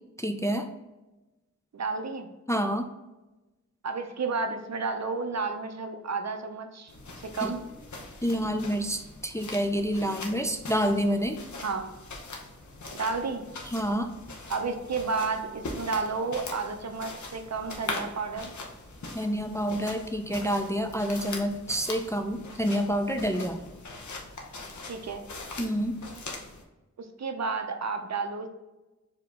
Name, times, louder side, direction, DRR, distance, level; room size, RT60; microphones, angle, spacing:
voice 1, 0.2-0.7 2.5-2.9 7.4-7.5 8.2-11.4 13.7-14.1 19.1-23.6 25.6-26.0, equal, 10° left, 5 dB, 0.3 m, -28 dB
voice 2, 1.7-2.3 3.8-6.9 7.2-7.6 11.6-11.9 12.9-13.5 14.5-18.5 24.8-25.3 27.0-28.5, right 4 dB, 60° right, 6 dB, 0.6 m, -31 dB
sound 1, 6.9-26.6, left 2 dB, 70° left, 0.8 m, -41 dB
4.9 x 2.8 x 3.6 m, 1.1 s
wide cardioid pair, 70°, 30 cm